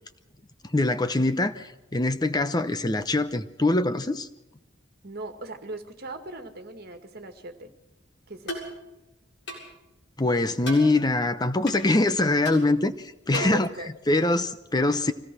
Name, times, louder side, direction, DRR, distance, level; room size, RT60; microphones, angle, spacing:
voice 1, 0.6-4.3 10.2-13.7 14.1-15.1, left 2 dB, 20° left, 11 dB, 0.8 m, -23 dB
voice 2, 5.0-7.7 8.3-8.6 13.3-13.9, right 2 dB, 55° right, 7 dB, 2.1 m, -37 dB
sound 1, 8.5-8.7 9.5-9.7 10.6-10.9 11.7-11.8 12.4-12.6 13.3-13.6, left 1 dB, 70° left, 7.3 m, -35 dB
24.5 x 17.0 x 6.2 m, 0.92 s
head